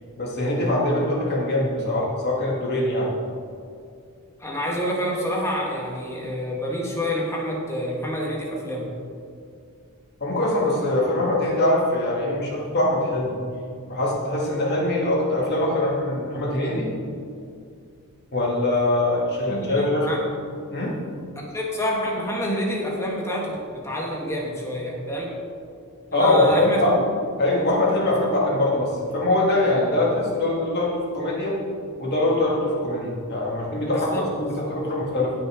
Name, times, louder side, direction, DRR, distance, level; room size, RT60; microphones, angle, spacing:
voice 1, 0.2-3.1 10.2-13.4 13.9-16.9 18.3-20.1 20.7-20.9 26.1-27.0 27.4-31.6 32.0-34.1 34.4-35.3, left 1 dB, 50° left, -4 dB, 2.4 m, -22 dB
voice 2, 4.4-8.9 19.5-20.2 21.3-25.4 26.1-26.8 33.9-34.8, equal, 10° left, -2 dB, 1.7 m, -28 dB
17.5 x 6.0 x 3.8 m, 2.4 s
head